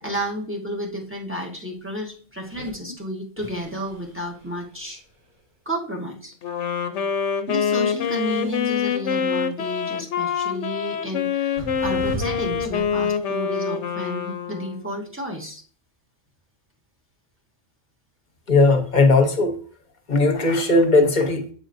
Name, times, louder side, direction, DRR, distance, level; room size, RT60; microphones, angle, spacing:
voice 1, 0.0-5.0 5.6-6.3 7.5-15.6, equal, 10° right, 0 dB, 1.1 m, -31 dB
sound 1, 2.4-2.7 3.4-5.4 7.8-8.8 10.4-10.5 11.6-13.1, right 1 dB, 40° right, 2.1 m, -38 dB
Wind instrument woodwind instrument, 6.4-15.1, left 7 dB, 75° left, 1.0 m, -25 dB
voice 2, 18.5-19.6 20.1-21.5, left 3 dB, 40° left, 5 dB, 1.0 m, -18 dB
7.8 x 5.0 x 2.6 m, 0.43 s
omnidirectional pair, 1.3 m